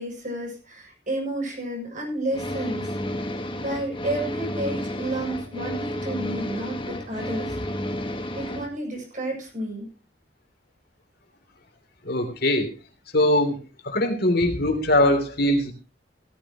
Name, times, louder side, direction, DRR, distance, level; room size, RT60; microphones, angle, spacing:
voice 1, 0.0-3.3 3.6-7.6 8.3-9.9, right 1 dB, 45° right, 0 dB, 7.5 m, -31 dB
sound 1, 2.3-8.7, left 1 dB, 30° left, 1.6 m, -31 dB
voice 2, 12.0-12.7 13.1-13.6 13.8-15.7, left 1 dB, 60° left, 5 dB, 3.2 m, -21 dB
16.5 x 14.0 x 3.1 m, 0.32 s
head